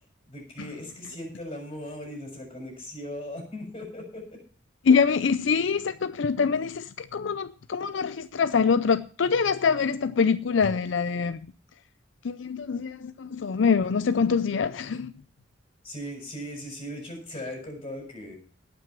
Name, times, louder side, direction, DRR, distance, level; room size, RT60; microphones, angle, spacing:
voice 1, 0.3-4.4 15.8-18.4, left 1 dB, 30° left, 6.8 m, -38 dB
voice 2, 4.8-11.5 12.2-15.1, left 5 dB, 75° left, 0.5 m, -24 dB
18.0 x 6.1 x 6.0 m
head